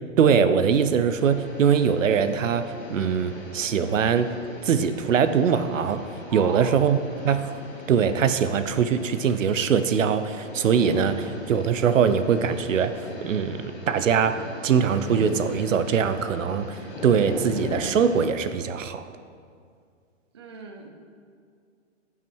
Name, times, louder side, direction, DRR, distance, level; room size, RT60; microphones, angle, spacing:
voice 1, 0.2-4.3 4.6-7.0 7.2-7.5 7.9-19.1, right 7 dB, 85° right, 11 dB, 0.8 m, -22 dB
sound 1, 1.1-18.2, left 2 dB, 20° left, 1.3 m, -39 dB
voice 2, 6.3-6.9 20.3-20.9, right 5 dB, 20° right, 3 dB, 0.5 m, -38 dB
15.5 x 6.0 x 4.7 m, 2.2 s
hypercardioid pair, 165°, 38 cm